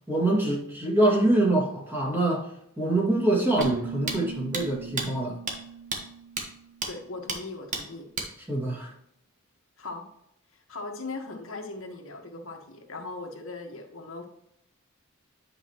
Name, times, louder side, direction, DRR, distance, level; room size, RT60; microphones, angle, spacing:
voice 1, 0.0-5.4 8.5-8.9, right 1 dB, 10° right, 2.2 m, -25 dB
sound 1, 3.6-3.7 4.1-4.2 4.5-4.6 5.0-5.1 5.5-5.6 5.9-6.0 6.4-6.5 6.8-6.9 7.3-7.4 7.7-7.8 8.2-8.3, right 4 dB, 40° right, 1.4 m, -30 dB
Keyboard (musical), 3.6-7.2, right 6 dB, 55° right, 0.7 m, -39 dB
voice 2, 6.9-8.0 9.8-10.0 10.5-14.3, left 3 dB, 75° left, 1.4 m, -39 dB
9.6 x 5.4 x 3.0 m
head